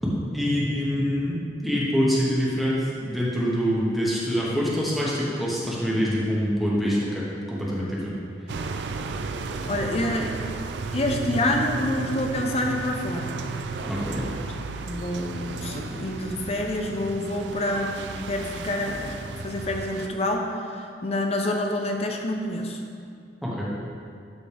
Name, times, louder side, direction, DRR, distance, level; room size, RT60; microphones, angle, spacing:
voice 1, 0.0-8.2 13.9-14.2 23.4-23.7, equal, ahead, -7 dB, 1.3 m, -25 dB
sound 1, 8.5-20.1, right 4 dB, 75° right, 0.4 m, -33 dB
voice 2, 9.6-10.4 10.9-13.3 14.8-19.2 19.4-22.8, left 1 dB, 35° left, 2 dB, 0.7 m, -27 dB
12.0 x 4.1 x 3.5 m, 2.3 s
head